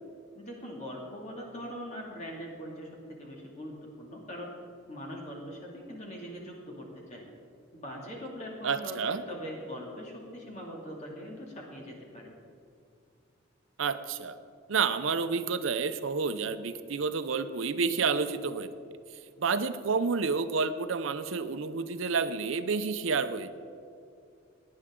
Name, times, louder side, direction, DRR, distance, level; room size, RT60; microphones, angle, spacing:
voice 1, 0.3-4.5 4.9-7.3 7.7-12.3, equal, 35° left, -2 dB, 2.4 m, -42 dB
voice 2, 8.6-9.2 13.8-14.4 14.7-18.7 19.4-23.5, right 5 dB, 75° right, 11 dB, 0.6 m, -29 dB
17.0 x 9.6 x 3.7 m, 2.4 s
head